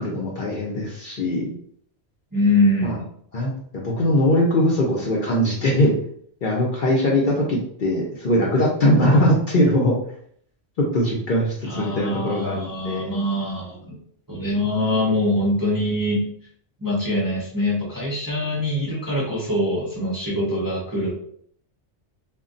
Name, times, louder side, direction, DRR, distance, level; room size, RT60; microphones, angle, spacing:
voice 1, 0.0-1.5 2.8-3.0 3.3-5.9 6.4-9.9 10.8-13.1, left 1 dB, 55° left, -3 dB, 0.6 m, -21 dB
voice 2, 2.3-3.1 11.6-14.0 14.3-16.2 16.8-21.1, left 1 dB, 25° right, -6 dB, 0.5 m, -23 dB
2.2 x 2.1 x 3.7 m, 0.63 s
omnidirectional pair, 1.2 m